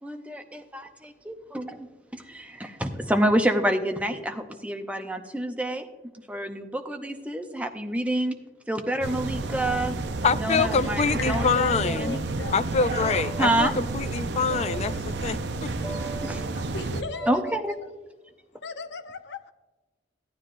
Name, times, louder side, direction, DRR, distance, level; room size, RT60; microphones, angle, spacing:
voice 1, 0.0-5.9 6.3-8.4 8.7-10.0 10.3-11.5 11.9-12.2 13.0-13.7 14.3-15.0 15.8-16.4 17.2-17.7, right 1 dB, 10° right, 6 dB, 0.6 m, -28 dB
sound 1, 9.0-17.0, right 3 dB, 70° right, 0.6 m, -31 dB
voice 2, 10.2-12.2 12.5-15.7, left 5 dB, 35° left, 13 dB, 0.4 m, -25 dB
voice 3, 11.2-12.8 16.2-16.3 16.7-17.8 18.6-19.5, left 5 dB, 75° left, 8 dB, 0.7 m, -37 dB
15.0 x 9.6 x 2.5 m, 1.2 s
head